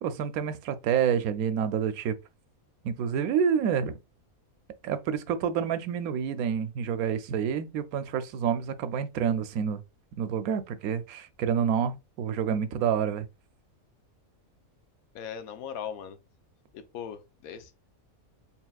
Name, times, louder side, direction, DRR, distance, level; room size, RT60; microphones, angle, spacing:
voice 1, 0.0-2.2 2.8-4.0 4.8-9.8 10.2-13.3, right 7 dB, 85° right, 1.0 m, -28 dB
voice 2, 15.1-16.2 16.7-17.7, left 8 dB, 80° left, 1.1 m, -39 dB
4.6 x 3.5 x 2.3 m
omnidirectional pair, 1.5 m